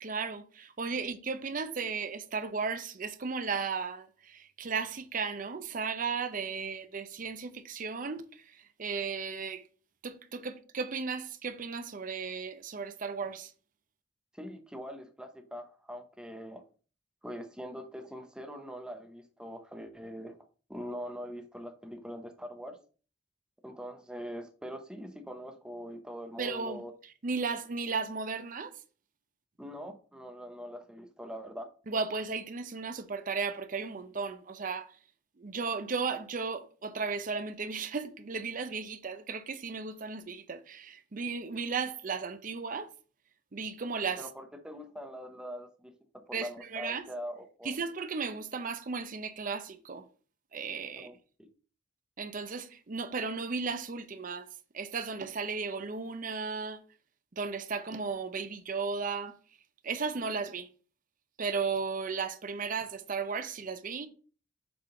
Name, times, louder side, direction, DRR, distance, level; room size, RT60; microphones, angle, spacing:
voice 1, 0.0-9.6 10.0-13.5 26.4-28.7 31.9-34.9 35.4-42.9 43.5-44.3 46.3-47.0 47.6-50.1 50.5-51.1 52.2-54.5 54.7-56.8 57.4-59.4 59.8-60.7 61.4-64.1, right 5 dB, 45° right, 0.6 m, -35 dB
voice 2, 14.3-16.6 17.2-20.4 20.7-22.8 23.6-26.9 29.6-31.7 44.2-45.9 46.3-47.7 51.0-51.1, equal, 5° right, 0.8 m, -42 dB
6.9 x 3.7 x 3.7 m
head